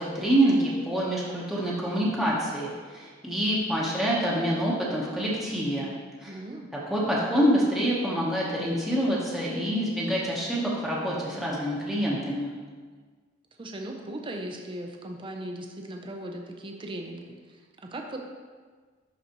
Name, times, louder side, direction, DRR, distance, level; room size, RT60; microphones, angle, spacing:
voice 1, 0.0-5.9 6.2-6.4 6.9-12.5, equal, ahead, -7 dB, 1.0 m, -26 dB
voice 2, 6.3-6.7 13.6-18.2, right 1 dB, 25° right, 2 dB, 0.5 m, -38 dB
11.0 x 4.1 x 2.9 m, 1.5 s
head